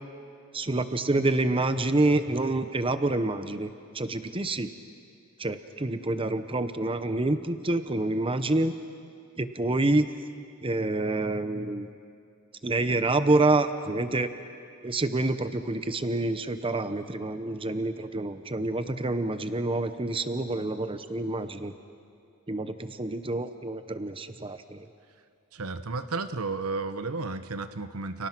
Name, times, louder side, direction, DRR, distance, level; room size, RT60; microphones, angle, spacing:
voice 1, 0.5-3.7 3.9-4.7 5.4-8.7 9.4-10.1 10.6-11.9 12.6-14.3 14.8-21.7 22.5-24.9, right 2 dB, 25° right, 10 dB, 0.9 m, -27 dB
voice 2, 25.5-28.3, right 3 dB, 80° right, 11 dB, 1.1 m, -32 dB
30.0 x 29.5 x 6.1 m, 2.4 s
head